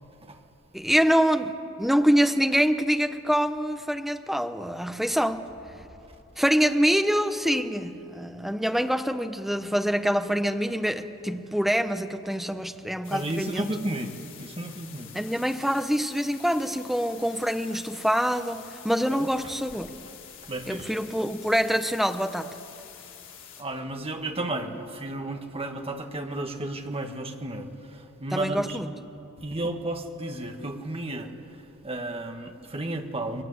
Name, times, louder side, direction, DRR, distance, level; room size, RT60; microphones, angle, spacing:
voice 1, 0.7-5.5 6.4-13.7 15.1-19.9 20.7-22.5 28.3-28.9, equal, ahead, 8 dB, 1.0 m, -25 dB
sound 1, 13.0-23.6, left 9 dB, 60° left, 3.6 m, -47 dB
voice 2, 13.1-14.1 14.4-15.1 19.1-19.3 20.5-20.9 23.6-28.8 29.4-31.3 31.8-33.4, right 2 dB, 25° right, 4 dB, 1.7 m, -33 dB
28.5 x 22.0 x 8.2 m, 2.8 s
head